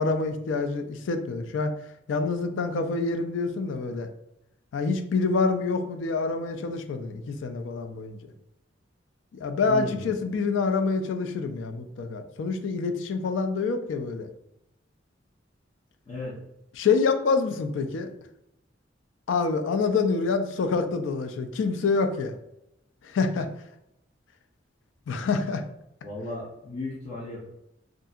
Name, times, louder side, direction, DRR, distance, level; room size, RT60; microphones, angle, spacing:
voice 1, 0.0-1.7 2.1-4.1 4.7-8.2 9.3-14.3 16.8-18.1 19.3-22.3 23.0-23.5 25.1-25.6, left 4 dB, 85° left, 7 dB, 0.3 m, -26 dB
voice 2, 9.7-10.1 16.1-16.3 26.0-27.4, left 2 dB, 35° left, -7 dB, 0.7 m, -35 dB
2.7 x 2.5 x 2.4 m, 0.83 s
head